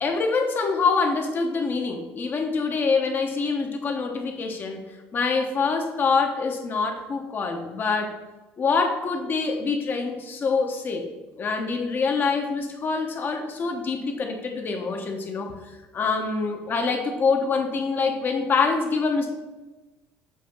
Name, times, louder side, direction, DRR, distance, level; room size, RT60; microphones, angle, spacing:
voice 1, 0.0-4.8 5.1-8.1 8.6-11.1 11.4-15.5 15.9-19.3, left 4 dB, 35° left, 4 dB, 1.0 m, -25 dB
7.5 x 2.7 x 5.4 m, 1.2 s
cardioid pair, 110°, 6 cm